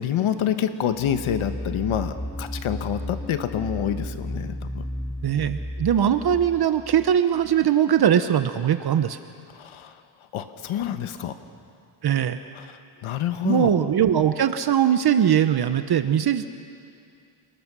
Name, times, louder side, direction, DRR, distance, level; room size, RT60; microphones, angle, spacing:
voice 1, 0.0-4.8 9.5-9.9 10.3-11.4 12.5-13.7, left 9 dB, 80° left, 9 dB, 1.3 m, -27 dB
sound 1, 0.9-7.6, equal, 10° left, 1.1 m, -34 dB
voice 2, 5.2-9.2 12.0-12.4 13.4-16.5, right 9 dB, 50° right, 10 dB, 0.9 m, -21 dB
28.5 x 20.0 x 6.2 m, 2.4 s
cardioid pair, 105°, 49 cm